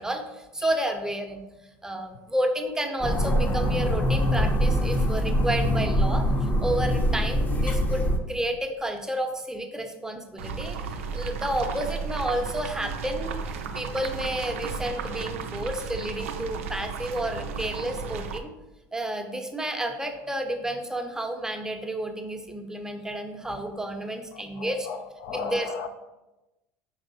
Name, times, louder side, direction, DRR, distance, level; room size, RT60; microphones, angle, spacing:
voice 1, 0.0-1.4 1.8-6.3 6.6-18.5 18.9-24.9 25.3-25.9, right 1 dB, 10° right, 4 dB, 0.6 m, -31 dB
sound 1, 3.0-8.2, equal, 25° left, 0.6 m, -24 dB
sound 2, 10.4-18.4, right 5 dB, 90° right, 0.4 m, -34 dB
voice 2, 24.6-25.9, left 6 dB, 70° left, 8 dB, 0.4 m, -35 dB
5.4 x 3.3 x 2.7 m, 1.0 s
hypercardioid pair, 80°, 7 cm